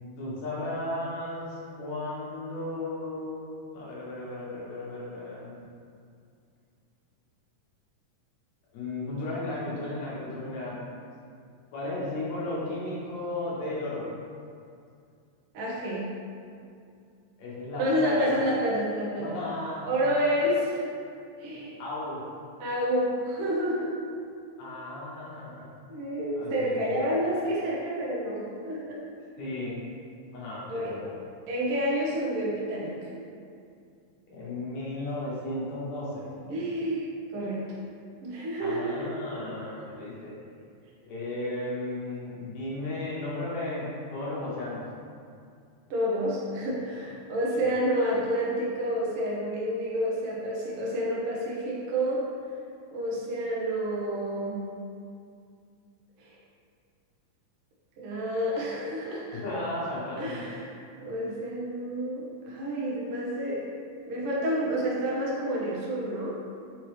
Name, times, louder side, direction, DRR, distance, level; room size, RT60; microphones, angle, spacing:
voice 1, 0.2-5.6 8.7-10.8 11.7-14.0 17.4-18.4 19.2-20.1 21.8-22.2 24.6-25.7 26.4-27.1 29.4-29.9 30.3-31.2 34.3-36.3 38.6-40.4 41.0-44.8 47.6-47.7 59.3-60.5, left 2 dB, 70° left, -7 dB, 1.8 m, -35 dB
voice 2, 15.5-16.1 17.8-19.4 19.8-20.9 21.4-21.7 22.6-24.0 25.9-29.0 30.7-30.9 31.5-33.1 36.5-37.6 38.2-39.1 45.9-52.3 52.9-54.7 56.2-56.3 58.0-59.4 60.2-60.7 61.0-63.7 64.1-66.4, equal, 90° right, -6 dB, 1.2 m, -29 dB
5.6 x 3.0 x 3.1 m, 2.4 s
omnidirectional pair, 3.9 m